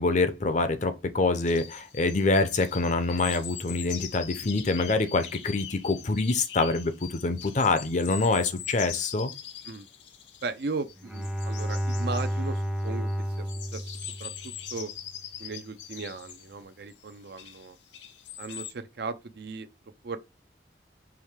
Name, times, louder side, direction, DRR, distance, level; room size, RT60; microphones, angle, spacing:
voice 1, 0.0-9.3, left 3 dB, 40° left, 0.6 m, -26 dB
sound 1, 1.4-16.5 16.9-18.7, left 9 dB, 80° left, 0.7 m, -42 dB
voice 2, 10.4-13.1 13.4-13.5 13.7-14.9 15.4-17.8 18.4-19.7 20.0-20.2, right 4 dB, 60° right, 0.5 m, -37 dB
Bowed string instrument, 11.0-14.8, equal, ahead, 0.5 m, -31 dB
4.8 x 3.1 x 3.6 m
head